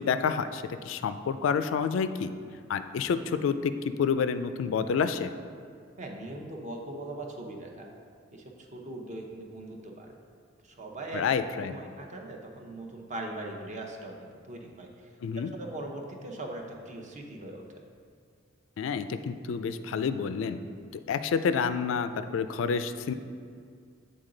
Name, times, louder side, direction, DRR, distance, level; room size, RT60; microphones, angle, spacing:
voice 1, 0.0-2.3 2.7-3.7 4.0-5.3 11.1-11.8 15.2-15.5 18.8-20.6 20.9-23.1, left 6 dB, 85° left, 11 dB, 0.3 m, -29 dB
voice 2, 6.0-7.9 8.3-10.1 10.6-11.3 11.6-14.9 15.5-17.6, right 2 dB, 40° right, 1 dB, 0.7 m, -40 dB
8.1 x 3.8 x 3.8 m, 2.2 s
head